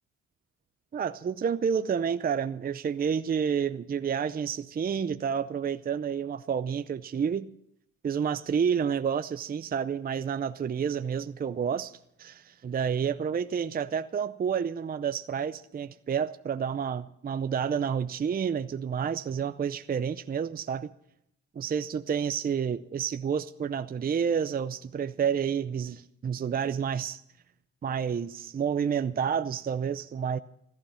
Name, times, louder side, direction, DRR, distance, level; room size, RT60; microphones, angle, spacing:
voice 1, 0.9-7.5 8.0-20.9 21.6-27.2 27.8-30.4, right 7 dB, 30° right, 0.6 m, -29 dB
15.0 x 14.0 x 5.7 m
cardioid pair, 90°, 30 cm